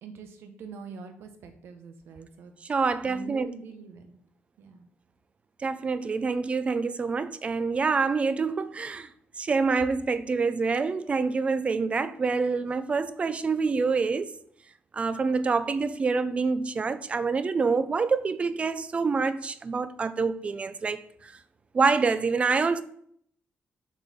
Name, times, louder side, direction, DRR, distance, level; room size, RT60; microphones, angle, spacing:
voice 1, 0.0-2.5 3.0-4.2 4.6-4.9, right 5 dB, 85° right, 1.3 m, -44 dB
voice 2, 2.7-3.5 5.6-9.1 9.4-14.4 14.9-21.0 21.7-22.8, right 4 dB, 30° right, 0.5 m, -26 dB
7.0 x 6.3 x 5.4 m
cardioid pair, 140°, 4 cm